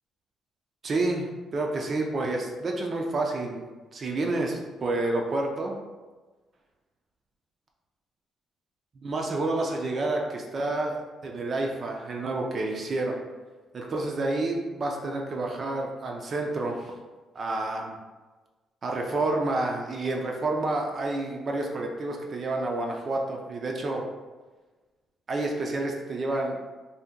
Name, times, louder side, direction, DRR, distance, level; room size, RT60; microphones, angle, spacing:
voice 1, 0.8-3.6 3.9-5.8 9.0-13.2 13.7-16.9 17.3-17.9 18.8-24.0 25.3-26.6, right 2 dB, 35° right, 1 dB, 0.3 m, -29 dB
2.7 x 2.1 x 3.5 m, 1.3 s
cardioid pair, 160°, 0 cm